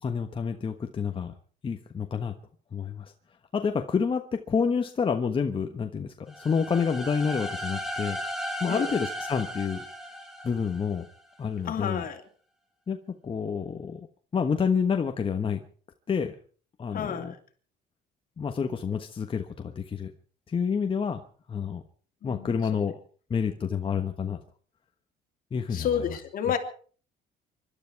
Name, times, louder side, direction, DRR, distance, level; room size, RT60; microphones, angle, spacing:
voice 1, 0.0-1.3 1.6-2.3 2.7-3.1 3.5-8.2 8.6-9.8 10.4-11.0 11.4-12.0 12.9-13.0 13.2-14.1 14.3-15.6 16.1-16.3 16.8-17.3 18.4-20.1 20.5-21.2 21.5-21.8 22.2-22.9 23.3-24.4 25.5-25.9, left 6 dB, 30° left, 1.3 m, -28 dB
sound 1, 6.3-11.1, equal, ahead, 4.0 m, -36 dB
voice 2, 11.6-12.2 16.9-17.4 22.2-22.8 25.7-26.6, left 8 dB, 55° left, 3.0 m, -30 dB
24.5 x 12.5 x 4.7 m
cardioid pair, 110°, 17 cm